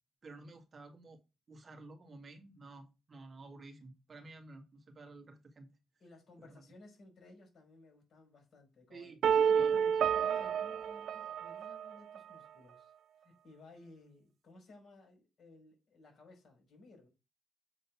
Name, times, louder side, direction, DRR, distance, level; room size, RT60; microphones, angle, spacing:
voice 1, 0.2-1.2 1.5-5.7 6.4-6.6 8.9-10.1, right 3 dB, 45° right, 2.0 m, -52 dB
voice 2, 6.0-9.2 9.6-9.9 10.2-12.9 13.2-17.1, left 2 dB, 55° left, 5.0 m, -58 dB
sound 1, 9.2-12.2, right 8 dB, 70° right, 0.3 m, -30 dB
7.5 x 3.9 x 5.8 m
supercardioid pair, 60°, 0 cm